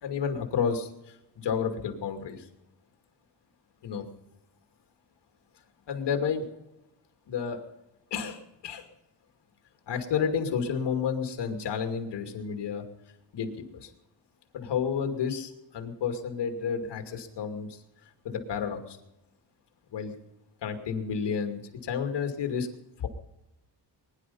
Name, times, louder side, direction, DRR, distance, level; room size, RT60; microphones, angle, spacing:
voice 1, 0.0-2.5 3.8-4.0 5.9-6.5 7.3-7.6 8.1-8.9 9.9-12.8 13.3-13.9 14.5-17.8 18.2-19.0 19.9-20.1 20.6-22.7 23.0-23.1, left 6 dB, 80° left, 5 dB, 2.6 m, -31 dB
21.5 x 11.0 x 5.5 m, 0.90 s
cardioid pair, 115°, 41 cm